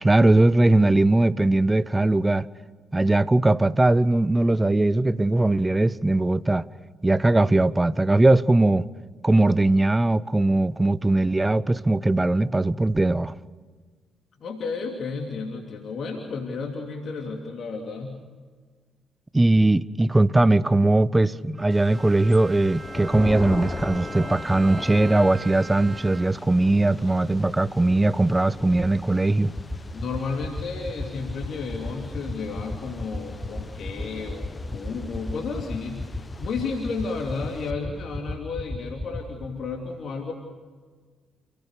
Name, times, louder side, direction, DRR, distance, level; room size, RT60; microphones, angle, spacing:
voice 1, 0.0-2.5 2.9-6.7 7.0-8.9 9.2-13.3 19.3-29.5, right 2 dB, 20° right, 0.9 m, -20 dB
voice 2, 14.4-18.2 27.0-27.1 29.9-40.3, left 4 dB, 55° left, 3.0 m, -32 dB
Bowed string instrument, 21.5-26.6, right 3 dB, 35° right, 3.6 m, -41 dB
Thunder / Rain, 21.7-37.7, left 3 dB, 30° left, 1.1 m, -39 dB
sound 1, 29.6-39.5, left 1 dB, ahead, 4.8 m, -31 dB
29.0 x 17.5 x 6.8 m
hypercardioid pair, 40°, 0 cm